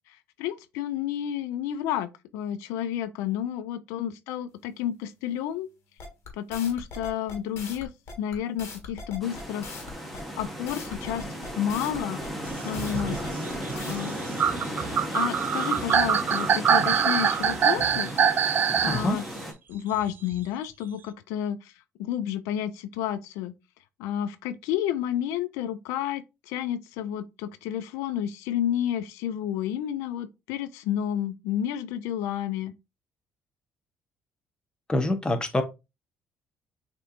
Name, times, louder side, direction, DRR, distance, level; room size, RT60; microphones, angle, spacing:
voice 1, 0.1-5.7 6.3-7.9 8.2-9.7 10.4-11.3 11.6-12.2 12.6-13.2 13.8-14.2 15.1-18.1 18.8-19.2 19.7-21.7 22.0-23.5 24.0-32.7, left 10 dB, 90° left, 0.4 m, -30 dB
sound 1, 6.0-14.0, left 4 dB, 65° left, 1.6 m, -41 dB
sound 2, 9.2-19.5, equal, ahead, 1.3 m, -35 dB
sound 3, 12.6-19.1 20.3-20.4, right 7 dB, 45° right, 0.3 m, -24 dB
voice 2, 18.9-19.2 34.9-35.6, left 1 dB, 15° left, 1.0 m, -25 dB
6.4 x 2.9 x 2.5 m
cardioid pair, 90°, 5 cm